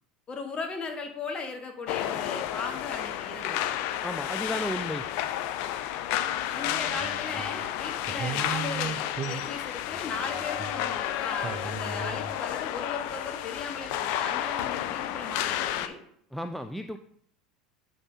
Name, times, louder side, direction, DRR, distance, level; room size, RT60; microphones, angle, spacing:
voice 1, 0.3-3.7 6.5-16.0, left 4 dB, 30° left, 3 dB, 1.4 m, -37 dB
sound 1, 1.9-15.9, left 12 dB, 60° left, 0.5 m, -31 dB
voice 2, 4.0-5.0 16.3-17.0, equal, 5° left, 7 dB, 0.4 m, -33 dB
sound 2, 6.3-7.7 8.1-11.2 11.4-12.4, right 5 dB, 40° right, 0.8 m, -38 dB
8.2 x 5.3 x 2.8 m, 0.66 s
hypercardioid pair, 80°, 4 cm